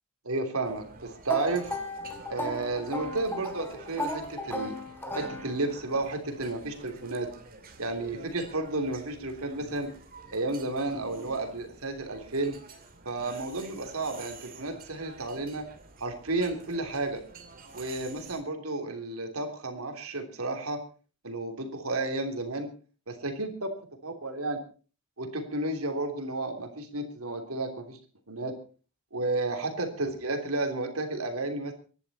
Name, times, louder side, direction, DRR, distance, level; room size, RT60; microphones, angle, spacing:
voice 1, 0.2-1.7 2.3-4.8 5.1-7.3 7.8-9.9 10.3-12.6 13.0-15.7 16.0-17.2 17.7-20.8 21.2-22.7 23.1-23.7 24.0-24.6 25.2-28.0 28.3-28.5 29.1-31.7, right 2 dB, 80° right, 5 dB, 3.3 m, -32 dB
sound 1, 0.6-18.4, right 3 dB, 40° right, 2.5 m, -49 dB
sound 2, 1.3-5.9, left 1 dB, 10° left, 3.2 m, -35 dB
24.5 x 11.0 x 4.3 m, 0.38 s
head